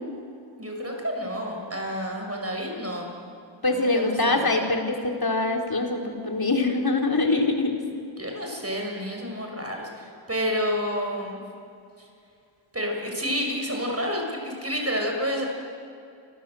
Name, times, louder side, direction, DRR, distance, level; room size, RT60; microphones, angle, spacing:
voice 1, 0.6-3.1 3.9-4.5 8.1-11.4 12.0-12.1 12.7-15.4, equal, 30° right, 1 dB, 6.5 m, -29 dB
voice 2, 3.6-7.7, left 2 dB, 45° left, 1 dB, 4.2 m, -24 dB
29.0 x 26.0 x 7.9 m, 2.4 s
wide cardioid pair, 80°, 49 cm